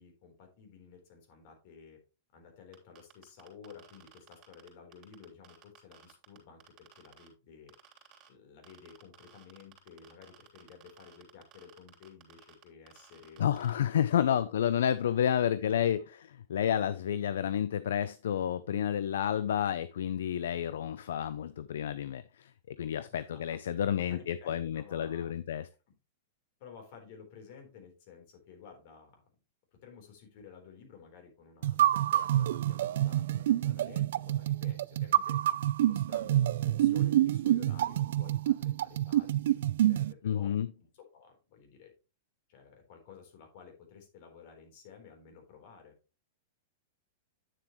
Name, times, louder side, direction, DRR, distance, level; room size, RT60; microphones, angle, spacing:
voice 1, 0.0-2.0 2.3-7.7 8.3-13.5 13.9-15.1 15.5-16.1 23.1-25.3 25.9-26.0 26.6-29.2 29.8-35.4 35.8-40.5 40.9-41.9 42.5-45.9, left 6 dB, 55° left, 3 dB, 3.8 m, -53 dB
sound 1, 2.7-7.3 7.7-8.3 8.6-13.7, right 11 dB, 40° right, 3.2 m, -56 dB
voice 2, 13.4-16.0 16.5-22.2 22.7-25.7 40.2-40.7, left 9 dB, 75° left, 15 dB, 0.4 m, -30 dB
sound 2, 31.6-40.1, right 12 dB, 70° right, 0.4 m, -27 dB
9.2 x 7.1 x 3.1 m, 0.31 s
hypercardioid pair, 115°, 0 cm